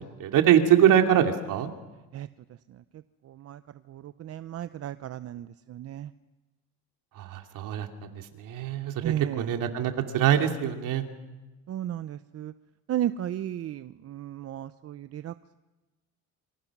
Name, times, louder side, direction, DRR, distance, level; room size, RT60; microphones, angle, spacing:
voice 1, 0.0-1.7 7.2-7.9 8.1-11.1, right 10 dB, 65° right, 5 dB, 2.9 m, -23 dB
voice 2, 2.7-3.6 3.9-6.1 9.0-9.5 11.7-12.5 12.9-15.3, right 11 dB, 45° right, 13 dB, 0.7 m, -34 dB
28.0 x 25.0 x 6.1 m, 1.1 s
cardioid pair, 115°, 34 cm